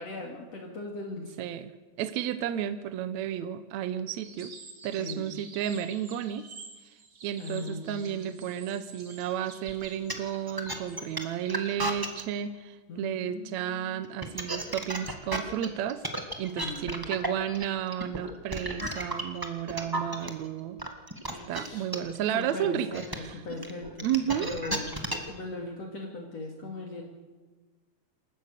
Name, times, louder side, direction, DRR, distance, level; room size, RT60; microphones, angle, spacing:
voice 1, 0.0-1.3 5.0-5.3 7.4-8.4 12.9-14.2 16.6-17.0 21.3-21.9 22.3-27.0, left 2 dB, 55° left, 0 dB, 3.2 m, -39 dB
voice 2, 1.4-1.7 2.0-4.5 4.8-6.5 7.2-16.0 16.4-20.8 21.5-23.4 24.0-24.6, right 10 dB, 70° right, 12 dB, 1.9 m, -32 dB
sound 1, 4.2-11.8, right 4 dB, 35° right, 2.7 m, -49 dB
sound 2, 9.7-12.2 14.0-20.3 20.8-25.4, right 1 dB, 20° right, 0.6 m, -33 dB
27.5 x 14.5 x 6.7 m, 1.3 s
omnidirectional pair, 3.8 m